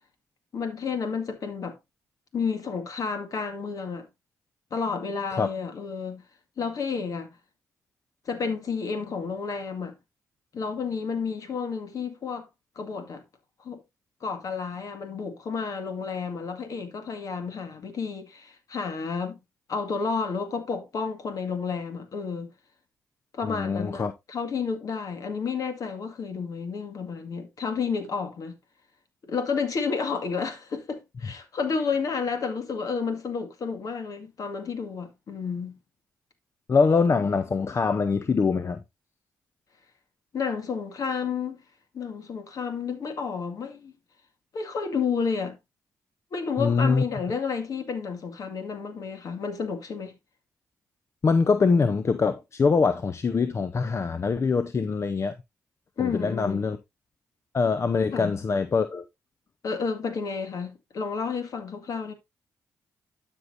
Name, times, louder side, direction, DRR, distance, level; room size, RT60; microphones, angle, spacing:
voice 1, 0.5-1.8 2.3-4.1 4.7-6.2 6.6-7.3 8.3-10.0 10.5-12.5 12.8-13.2 13.6-13.8 14.2-19.4 19.7-22.5 23.3-28.6 29.2-35.8 40.3-41.6 41.9-43.9 44.5-45.6 46.3-50.1 56.0-56.7 58.1-58.3 59.6-62.1, left 5 dB, 60° left, 2.0 m, -31 dB
voice 2, 23.4-24.1 36.7-38.8 46.6-47.0 51.2-55.3 56.0-56.8 57.5-59.0, left 4 dB, 45° left, 0.7 m, -23 dB
12.0 x 5.5 x 2.6 m
supercardioid pair, 50°, 7 cm